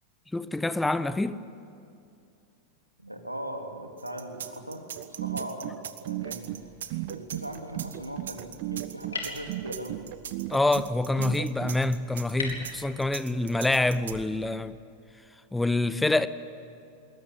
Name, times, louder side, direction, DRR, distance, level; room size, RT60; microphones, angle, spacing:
voice 1, 0.3-1.4 10.5-14.8 15.5-16.3, left 2 dB, 5° left, 0.7 m, -26 dB
voice 2, 3.0-6.5 7.1-10.0, right 1 dB, 90° right, 2.6 m, -39 dB
sound 1, 4.0-14.1, right 9 dB, 65° right, 1.3 m, -41 dB
sound 2, 5.0-11.8, right 19 dB, 45° right, 0.5 m, -36 dB
sound 3, 6.2-14.2, left 4 dB, 70° left, 3.6 m, -44 dB
20.5 x 20.0 x 10.0 m
figure-of-eight pair, 90°, 0 cm